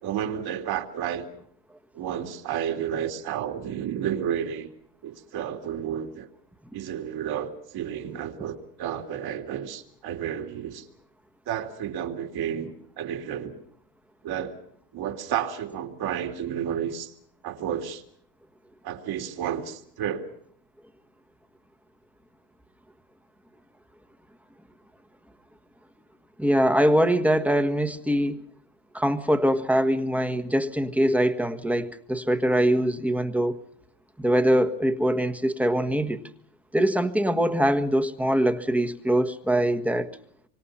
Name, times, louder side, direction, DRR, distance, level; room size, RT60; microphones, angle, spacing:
voice 1, 0.0-1.3 1.9-4.7 5.0-6.3 6.7-10.9 11.5-13.6 14.2-14.6 14.9-17.1 17.4-18.0 18.8-20.3, right 9 dB, 50° right, 3.4 m, -31 dB
voice 2, 26.4-28.4 28.9-33.6 34.2-36.2 36.7-40.1, equal, 5° right, 1.4 m, -23 dB
27.0 x 25.0 x 5.6 m
cardioid pair, 135°, 47 cm